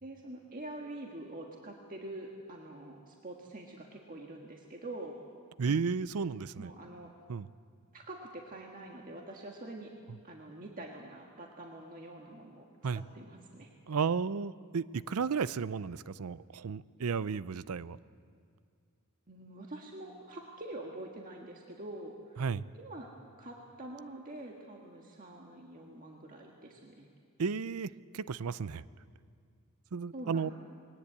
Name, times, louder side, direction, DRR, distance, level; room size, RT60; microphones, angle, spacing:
voice 1, 0.0-5.2 6.5-7.1 7.9-9.9 10.2-13.7 19.3-22.4 22.7-23.1 23.4-27.1 30.1-30.5, right 1 dB, 40° right, 0 dB, 1.6 m, -45 dB
voice 2, 5.6-6.7 7.3-7.5 12.8-13.0 13.9-18.0 22.4-22.7 27.4-28.8 29.9-30.5, right 5 dB, 75° right, 18 dB, 0.5 m, -33 dB
21.0 x 19.0 x 8.5 m, 2.2 s
head